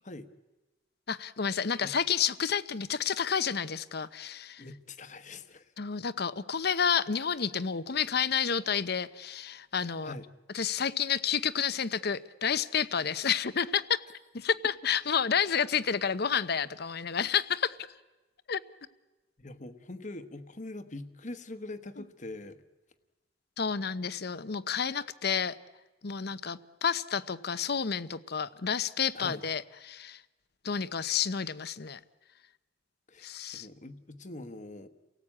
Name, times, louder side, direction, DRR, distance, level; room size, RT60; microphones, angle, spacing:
voice 1, 1.1-4.6 5.8-10.1 10.5-14.0 14.3-17.8 18.5-18.6 23.6-25.6 26.0-30.2 30.6-32.0 33.2-33.7, left 7 dB, 55° left, 15 dB, 0.8 m, -30 dB
voice 2, 4.6-5.7 9.8-10.2 19.4-22.6 29.1-29.4 33.1-34.9, left 2 dB, 40° left, 10 dB, 1.3 m, -43 dB
29.5 x 18.0 x 8.7 m, 1.1 s
head